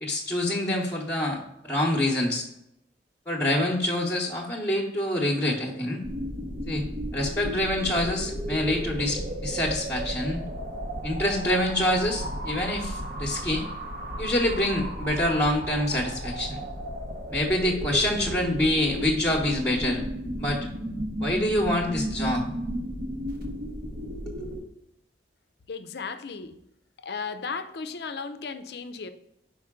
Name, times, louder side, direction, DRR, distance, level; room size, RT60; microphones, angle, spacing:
voice 1, 0.0-2.4 3.3-6.0 6.7-6.8 7.1-10.4 11.0-13.7 14.2-16.6 17.3-20.0 20.4-20.6 21.2-22.5 24.3-24.4, left 1 dB, 15° left, -4 dB, 0.9 m, -26 dB
sound 1, 6.0-24.6, equal, 50° right, 1.0 m, -34 dB
voice 2, 25.7-26.6 27.0-29.1, left 5 dB, 60° left, 10 dB, 0.5 m, -35 dB
5.6 x 4.6 x 3.6 m, 0.79 s
head